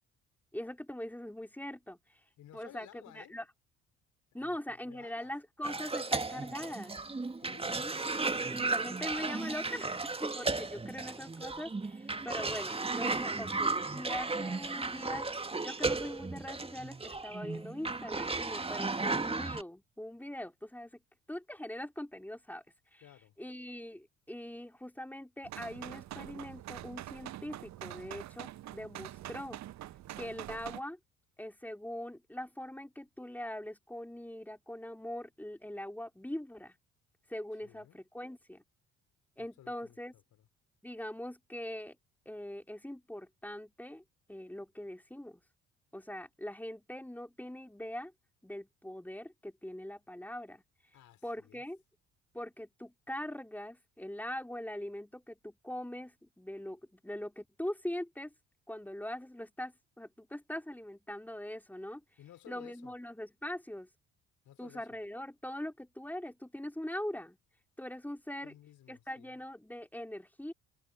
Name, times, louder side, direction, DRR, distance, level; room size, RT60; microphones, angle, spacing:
voice 1, 0.5-2.2 2.5-3.4 4.3-6.9 7.7-7.9 8.5-15.3 15.6-21.0 21.3-22.6 22.9-23.0 23.4-29.6 30.2-31.0 31.4-36.8 37.3-38.6 39.4-40.1 40.8-42.0 42.3-44.0 44.3-45.4 45.9-48.1 48.4-50.6 51.2-51.8 52.3-58.3 58.7-62.0 62.5-63.9 64.6-67.4 67.8-68.5 68.9-70.5, left 1 dB, 5° left, 3.9 m, -42 dB
voice 2, 2.4-3.4 4.3-5.3 5.7-6.1 7.4-7.9 23.0-23.4 37.6-38.0 39.4-40.5 50.9-51.6 62.2-63.0 64.5-65.0 68.4-69.4, left 12 dB, 55° left, 5.2 m, -57 dB
Cough, 5.6-19.6, right 3 dB, 15° right, 2.1 m, -35 dB
sound 1, 25.4-30.8, right 14 dB, 50° right, 1.5 m, -45 dB
figure-of-eight pair, 50°, 36 cm